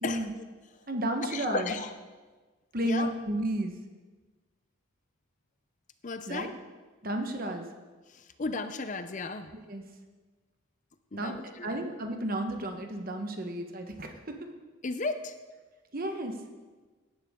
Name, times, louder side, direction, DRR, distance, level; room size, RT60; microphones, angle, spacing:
voice 1, 0.0-0.4 1.3-1.9 2.8-3.1 6.0-6.5 8.1-9.5 11.1-11.8 14.8-15.3, left 3 dB, 35° left, 10 dB, 0.5 m, -34 dB
voice 2, 0.9-1.8 2.7-3.7 6.3-6.5 7.0-7.7 9.5-9.8 11.1-14.5 15.9-16.4, right 1 dB, 40° right, 5 dB, 1.2 m, -32 dB
17.0 x 10.5 x 3.7 m, 1.3 s
head